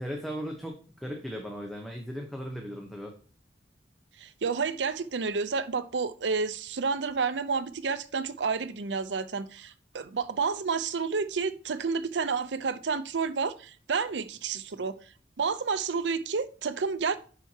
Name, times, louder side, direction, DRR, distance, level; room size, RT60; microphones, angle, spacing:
voice 1, 0.0-3.1, equal, ahead, 0.8 m, -37 dB
voice 2, 4.2-14.9 15.4-17.2, right 5 dB, 85° right, 0.6 m, -30 dB
10.5 x 4.5 x 2.8 m
head